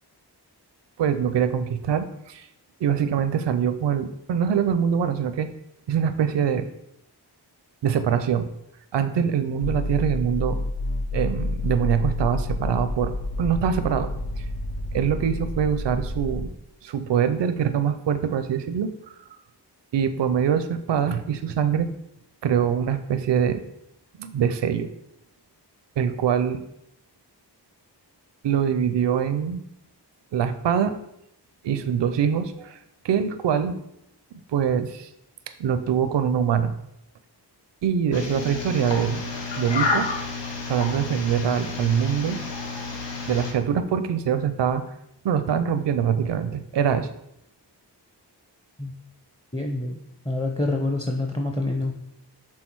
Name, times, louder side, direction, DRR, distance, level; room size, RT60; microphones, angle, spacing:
voice 1, 1.0-2.5 2.8-5.5 5.9-6.7 7.8-8.5 8.9-10.6 11.1-14.1 14.4-14.5 14.9-16.5 16.8-19.2 19.9-21.9 22.4-23.6 24.2-24.9 26.0-26.6 28.4-29.6 30.3-31.0 31.6-32.8 33.0-33.8 34.5-35.1 35.6-36.7 37.8-39.2 39.6-40.1 40.7-42.4 43.3-44.8 45.2-47.1, right 8 dB, 85° right, 10 dB, 0.5 m, -24 dB
sound 1, 9.6-16.5, left 1 dB, 60° left, 0.8 m, -29 dB
sound 2, 38.1-43.5, left 3 dB, 90° left, 1.1 m, -30 dB
voice 2, 49.5-52.0, left 2 dB, 10° left, 2 dB, 0.6 m, -27 dB
6.3 x 3.6 x 4.5 m, 0.80 s
wide cardioid pair, 75°, 42 cm